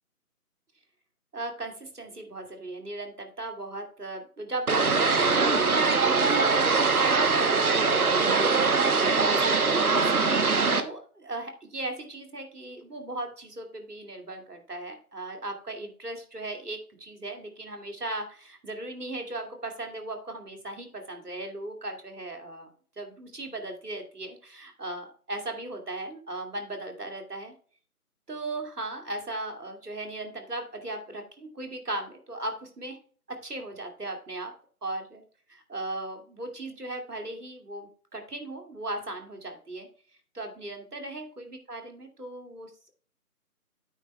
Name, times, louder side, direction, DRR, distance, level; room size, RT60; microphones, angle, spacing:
voice 1, 1.3-9.7 10.0-22.7 23.0-27.5 28.3-33.0 33.3-34.5 34.8-35.2 35.5-39.9 40.3-42.9, right 2 dB, 85° right, 3 dB, 2.6 m, -37 dB
sound 1, 4.7-10.8, right 4 dB, 70° right, 1.1 m, -22 dB
9.0 x 8.4 x 2.3 m, 0.43 s
figure-of-eight pair, 165°, 46 cm